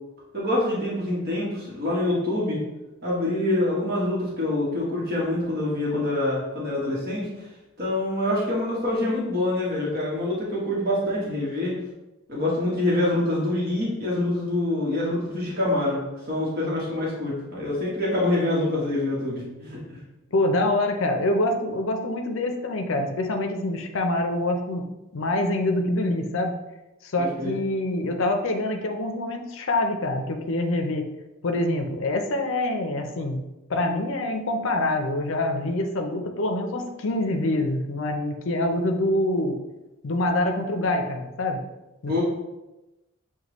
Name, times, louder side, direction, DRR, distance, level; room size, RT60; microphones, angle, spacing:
voice 1, 0.3-2.6 3.0-7.5 7.8-11.8 12.3-16.0 16.3-19.8 27.2-27.6 42.1-42.2, left 1 dB, 45° right, -5 dB, 1.1 m, -25 dB
voice 2, 20.3-24.8 25.1-26.5 27.0-31.1 31.4-33.4 33.7-39.6 40.0-41.6 42.0-42.2, left 1 dB, 60° left, 4 dB, 0.5 m, -25 dB
6.5 x 2.3 x 3.0 m, 0.99 s
head